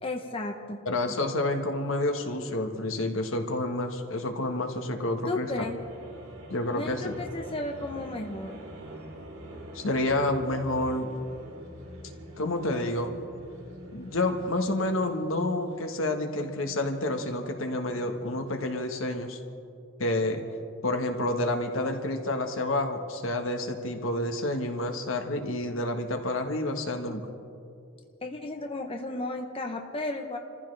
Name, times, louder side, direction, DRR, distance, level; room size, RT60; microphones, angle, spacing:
voice 1, 0.0-0.8 5.3-5.8 6.7-8.6 28.2-30.4, left 2 dB, 25° left, 3 dB, 0.8 m, -34 dB
voice 2, 0.8-5.5 6.5-7.1 9.7-11.1 12.4-13.1 13.9-19.4 20.0-20.4 20.8-27.2, left 1 dB, 75° left, 5 dB, 1.4 m, -29 dB
sound 1, 5.4-18.6, right 1 dB, 80° right, 3.2 m, -45 dB
29.5 x 14.5 x 3.3 m, 2.6 s
head